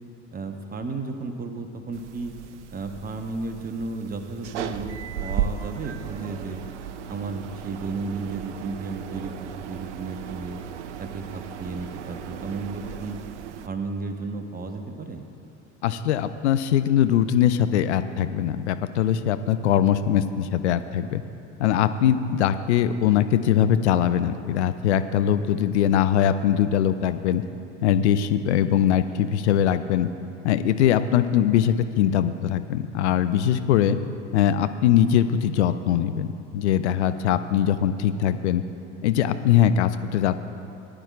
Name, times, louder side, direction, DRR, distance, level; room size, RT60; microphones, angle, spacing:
voice 1, 0.3-2.3 2.7-6.6 7.1-10.6 11.0-13.2 13.7-15.2, right 3 dB, 25° right, 6 dB, 1.0 m, -33 dB
sound 1, 1.9-13.7, right 8 dB, 70° right, 0.6 m, -35 dB
voice 2, 15.8-21.2 21.6-27.4 27.8-30.1 30.4-34.0 34.3-38.6 39.0-40.3, left 10 dB, 65° left, 11 dB, 0.5 m, -21 dB
18.5 x 10.5 x 2.5 m, 2.6 s
figure-of-eight pair, 65°, 37 cm